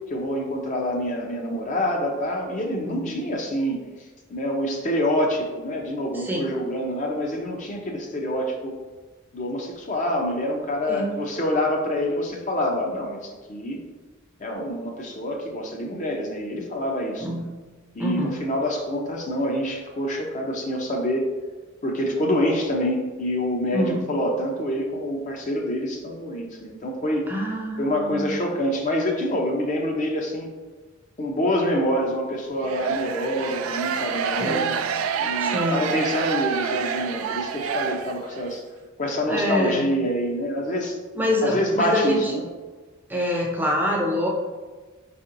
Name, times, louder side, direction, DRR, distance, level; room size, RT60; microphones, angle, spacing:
voice 1, 0.0-3.8 4.3-8.8 9.3-13.8 14.4-17.3 17.9-21.3 21.8-27.3 27.8-30.5 31.2-34.8 35.2-38.6 39.0-41.0 41.4-42.5, equal, 35° left, 1 dB, 0.5 m, -26 dB
voice 2, 2.8-3.2 6.1-6.5 10.9-11.1 17.2-17.5 18.0-18.3 23.7-24.0 27.3-28.3 34.4-34.7 35.4-35.9 39.3-39.9 41.2-42.3 43.1-44.3, equal, 10° right, -1 dB, 0.5 m, -26 dB
sound 1, 32.6-38.5, right 7 dB, 85° right, 0.3 m, -27 dB
4.4 x 4.2 x 2.5 m, 1.4 s
head